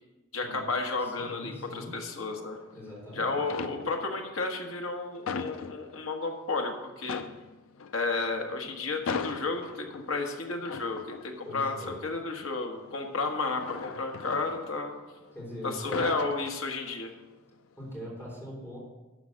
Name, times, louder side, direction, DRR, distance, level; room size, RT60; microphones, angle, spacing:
voice 1, 0.3-2.6 3.2-7.2 7.9-15.0 15.6-17.1, left 3 dB, 70° left, 2 dB, 1.5 m, -32 dB
voice 2, 1.0-1.9 2.7-3.4 11.4-12.0 15.3-16.1 17.7-18.8, left 1 dB, 10° left, -5 dB, 3.6 m, -41 dB
sound 1, 2.4-3.0 3.4-4.2 4.6-6.4 6.7-6.8 7.0-15.3 15.7-17.2 17.5-17.8, left 5 dB, 90° left, 0.5 m, -39 dB
12.0 x 4.9 x 6.5 m, 1.2 s
head